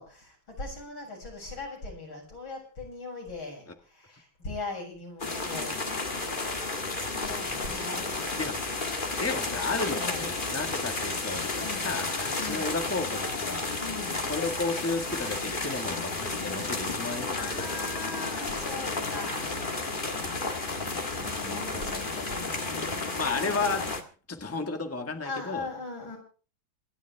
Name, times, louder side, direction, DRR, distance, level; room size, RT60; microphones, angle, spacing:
voice 1, 0.0-5.8 7.1-8.3 9.9-10.5 11.6-12.0 12.4-12.7 13.8-14.2 17.3-19.6 21.1-23.2 25.2-26.2, left 3 dB, 85° left, 0 dB, 8.0 m, -40 dB
sound 1, 5.2-24.0, left 3 dB, 25° left, 1.9 m, -32 dB
voice 2, 9.2-13.7 14.3-17.5 23.2-24.0 24.3-25.7, left 3 dB, 10° left, 5 dB, 1.7 m, -33 dB
27.0 x 11.0 x 3.5 m, 0.38 s
omnidirectional pair, 2.1 m